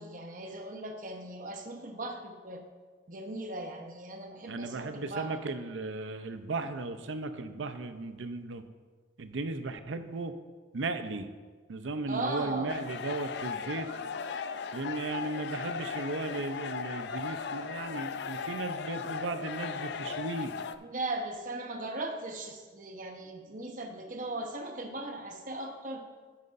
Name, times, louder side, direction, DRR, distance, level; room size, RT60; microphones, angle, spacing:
voice 1, 0.0-2.7 3.1-5.3 12.1-12.7 20.8-26.1, right 2 dB, 45° right, 4 dB, 0.9 m, -38 dB
voice 2, 4.5-8.6 9.2-10.3 10.7-11.3 11.7-13.9 14.7-20.5, right 3 dB, 75° right, 9 dB, 0.6 m, -36 dB
sound 1, 12.7-20.7, left 6 dB, 60° left, 0.4 m, -37 dB
10.5 x 9.5 x 2.6 m, 1.4 s
head